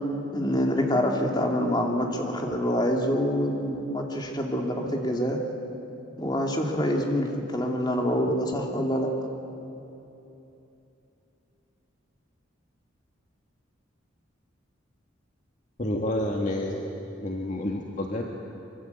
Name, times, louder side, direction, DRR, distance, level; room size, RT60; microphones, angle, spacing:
voice 1, 0.3-5.4 6.2-9.1, equal, 20° left, 1 dB, 2.8 m, -26 dB
voice 2, 15.8-16.9 17.2-18.2, left 1 dB, 40° left, 1 dB, 1.8 m, -29 dB
25.0 x 23.5 x 8.3 m, 2.9 s
head